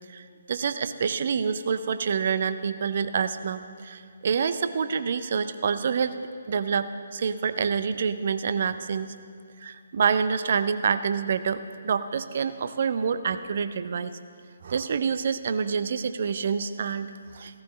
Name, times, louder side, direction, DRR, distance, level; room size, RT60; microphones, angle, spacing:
voice 1, 0.1-6.1 6.5-9.1 9.6-14.2 14.6-17.6, right 6 dB, 45° right, 12 dB, 0.6 m, -27 dB
16.5 x 14.5 x 3.2 m, 2.2 s
figure-of-eight pair, 140°, 0 cm